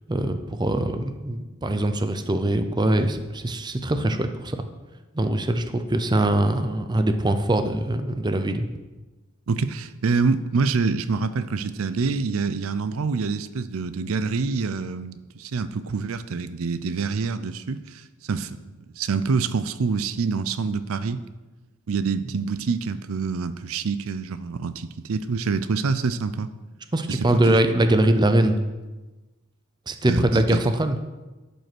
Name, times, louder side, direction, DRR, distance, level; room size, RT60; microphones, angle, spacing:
voice 1, 0.1-4.7 5.2-8.7 26.9-28.6 29.9-31.0, right 1 dB, 20° right, 8 dB, 0.6 m, -22 dB
voice 2, 9.5-18.6 19.0-21.2 21.9-26.5 27.1-27.6 30.1-30.6, right 4 dB, 80° right, 13 dB, 0.5 m, -26 dB
11.0 x 5.4 x 6.0 m, 1.2 s
head